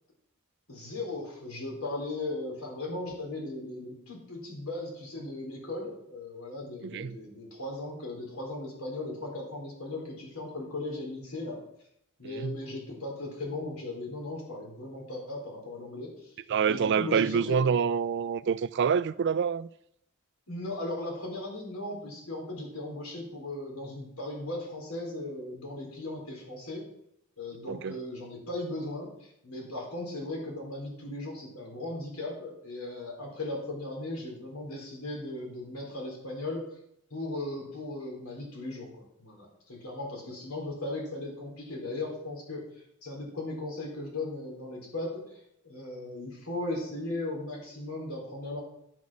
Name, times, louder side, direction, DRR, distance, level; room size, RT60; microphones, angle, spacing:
voice 1, 0.7-11.6 12.2-16.3 16.7-17.6 20.5-26.8 27.4-36.7 37.1-48.6, left 2 dB, 90° left, 4.1 m, -37 dB
voice 2, 6.8-7.2 12.4-12.6 16.5-19.7 27.7-28.0, right 6 dB, 55° right, 0.4 m, -27 dB
10.5 x 6.3 x 6.2 m
head